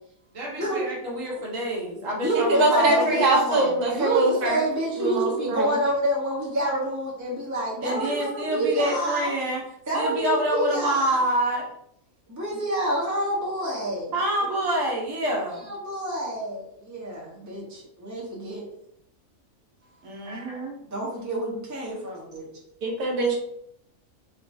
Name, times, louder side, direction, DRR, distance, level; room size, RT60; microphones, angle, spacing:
voice 1, 0.3-3.8 7.8-9.6 9.9-11.6 14.1-15.7 20.0-20.8, right 1 dB, 60° right, -2 dB, 1.4 m, -27 dB
voice 2, 1.9-3.4 3.9-9.3 9.9-11.6 12.3-14.1 15.7-18.6 20.2-20.6 20.9-22.5, right 1 dB, 15° right, -4 dB, 1.0 m, -28 dB
voice 3, 2.5-4.6 5.0-5.8 22.8-23.4, right 2 dB, 85° right, -1 dB, 1.5 m, -23 dB
4.2 x 3.1 x 2.7 m, 0.73 s
omnidirectional pair, 1.6 m